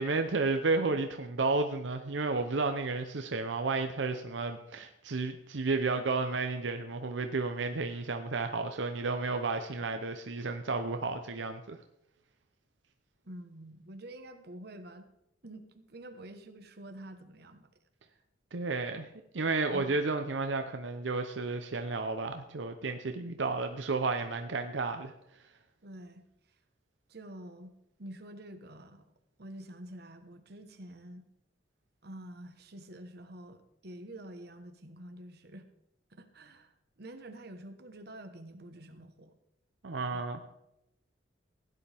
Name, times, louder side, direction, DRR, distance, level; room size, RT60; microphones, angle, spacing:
voice 1, 0.0-11.8 18.5-19.1 19.3-25.1 39.8-40.4, right 3 dB, 90° right, 6 dB, 0.8 m, -32 dB
voice 2, 13.2-15.1 15.4-17.7 19.7-19.9 25.8-26.2 27.1-29.1 29.4-31.3 32.0-35.7 36.1-36.7 37.0-39.3 40.1-40.3, right 1 dB, 60° right, 7 dB, 1.3 m, -47 dB
16.0 x 10.0 x 3.5 m, 0.83 s
head